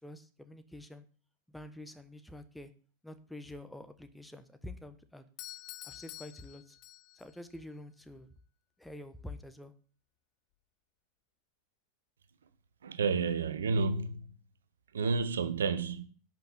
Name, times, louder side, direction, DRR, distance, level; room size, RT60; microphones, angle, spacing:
voice 1, 0.0-1.1 1.5-2.7 3.0-5.2 5.8-6.8 7.1-8.3 8.8-9.7, left 1 dB, 5° left, 1.2 m, -47 dB
Doorbell, 5.4-7.4, left 18 dB, 40° left, 0.5 m, -48 dB
voice 2, 12.8-14.3 14.9-16.0, right 4 dB, 65° right, 1.0 m, -30 dB
11.5 x 6.1 x 7.2 m
figure-of-eight pair, 90°, 0 cm